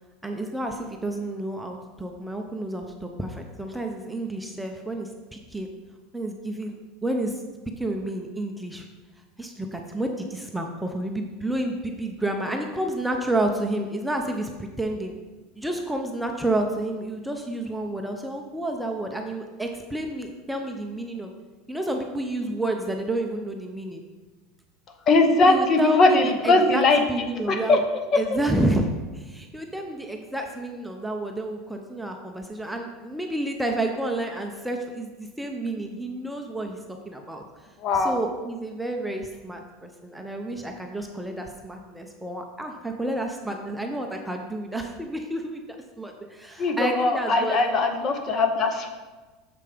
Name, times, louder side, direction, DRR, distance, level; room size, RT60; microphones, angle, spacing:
voice 1, 0.2-5.7 6.1-6.8 7.0-7.4 7.8-8.9 9.4-15.1 15.6-21.3 21.7-24.0 25.5-26.2 26.4-26.8 27.1-27.8 28.1-28.9 29.1-36.8 37.1-37.4 37.9-45.6 46.0-47.6, right 1 dB, 5° right, 2 dB, 0.6 m, -30 dB
voice 2, 25.1-27.8 28.1-28.2 37.8-38.2 46.6-48.9, left 3 dB, 35° left, 6 dB, 0.9 m, -20 dB
6.8 x 5.3 x 5.0 m, 1.3 s
supercardioid pair, 130°, 0 cm